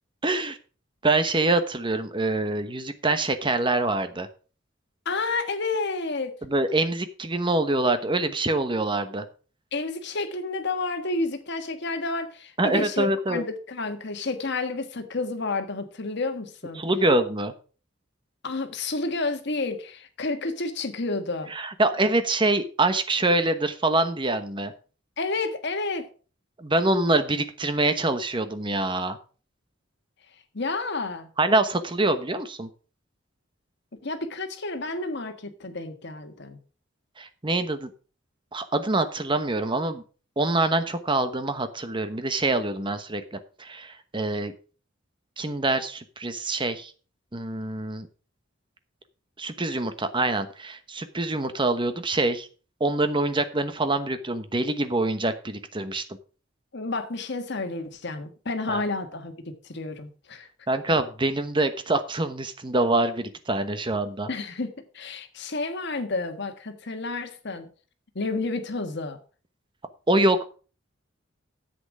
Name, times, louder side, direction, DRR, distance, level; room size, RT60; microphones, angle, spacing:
voice 1, 0.2-0.6 1.0-4.3 6.4-9.2 12.6-13.4 16.8-17.5 21.5-24.7 26.6-29.2 31.4-32.7 37.2-37.9 38.5-40.0 40.4-44.5 45.4-46.9 47.3-48.1 49.4-52.5 52.8-56.0 58.7-58.8 60.7-64.3 70.1-70.4, right 2 dB, 25° right, 1.1 m, -25 dB
voice 2, 5.0-6.3 9.7-16.8 18.4-21.5 25.2-26.1 30.5-31.3 34.0-36.6 56.7-60.5 64.3-67.7 68.1-69.2, left 3 dB, 60° left, 1.5 m, -30 dB
10.0 x 8.0 x 4.9 m
head